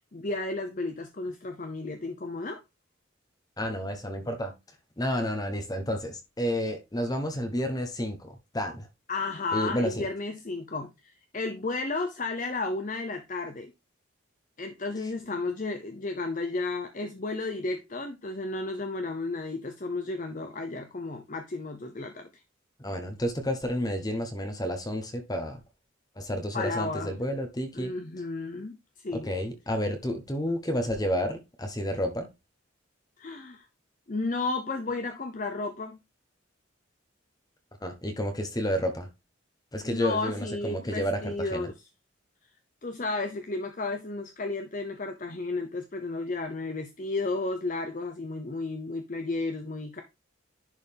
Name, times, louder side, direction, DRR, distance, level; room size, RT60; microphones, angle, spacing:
voice 1, 0.1-2.6 9.1-13.7 14.6-22.4 26.5-27.1 27.7-29.3 33.2-33.7 34.1-36.0 39.8-41.8 42.8-50.0, left 3 dB, 40° left, 0.7 m, -33 dB
voice 2, 3.6-4.5 5.0-8.9 9.5-10.0 22.8-25.6 26.2-27.9 29.1-32.3 37.8-39.1 39.7-41.7, equal, 20° left, 1.0 m, -30 dB
11.0 x 4.0 x 3.5 m
head